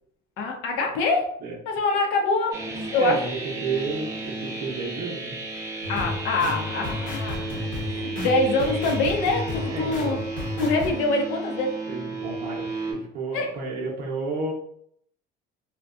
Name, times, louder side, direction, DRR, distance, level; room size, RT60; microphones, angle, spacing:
voice 1, 0.4-1.3 1.7-3.2 5.9-10.2 10.6-11.7 13.3-13.6, left 3 dB, 65° left, 2 dB, 0.6 m, -25 dB
sound 1, 2.5-12.9, right 3 dB, 15° right, 0.3 m, -34 dB
voice 2, 3.0-3.3 3.6-5.4 9.7-10.2 11.9-14.5, right 3 dB, 50° right, -1 dB, 0.6 m, -31 dB
sound 2, 5.8-10.9, left 3 dB, 40° left, 0.9 m, -33 dB
2.5 x 2.2 x 2.3 m, 0.67 s
cardioid pair, 170°, 21 cm